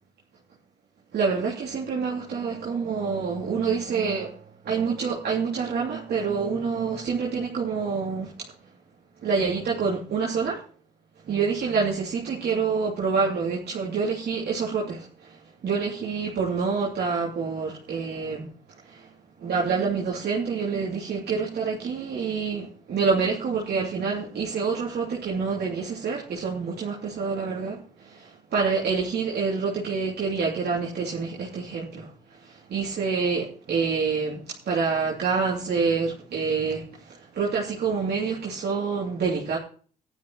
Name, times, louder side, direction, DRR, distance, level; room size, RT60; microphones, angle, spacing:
voice 1, 1.1-8.3 9.2-10.6 11.3-18.5 18.8-19.1 19.4-39.6, right 5 dB, 55° right, 2.7 m, -27 dB
14.5 x 11.0 x 3.0 m
hypercardioid pair, 50°, 21 cm